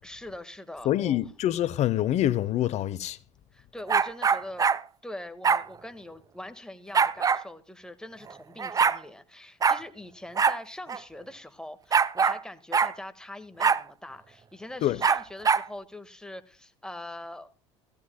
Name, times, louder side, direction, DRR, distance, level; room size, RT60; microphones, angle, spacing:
voice 1, 0.0-1.2 3.5-4.7 5.0-17.5, left 1 dB, 5° left, 1.6 m, -42 dB
voice 2, 0.8-3.2 14.8-15.0, left 12 dB, 50° left, 0.8 m, -26 dB
sound 1, 3.9-4.8 5.4-5.6 6.9-7.4 8.3-8.4 8.6-9.0 9.6-9.8 10.4-10.6 10.9-11.0 11.9-12.4 12.7-12.9 13.6-13.8 15.0-15.7, right 6 dB, 25° right, 0.6 m, -23 dB
17.0 x 15.5 x 2.2 m
hypercardioid pair, 85°, 15 cm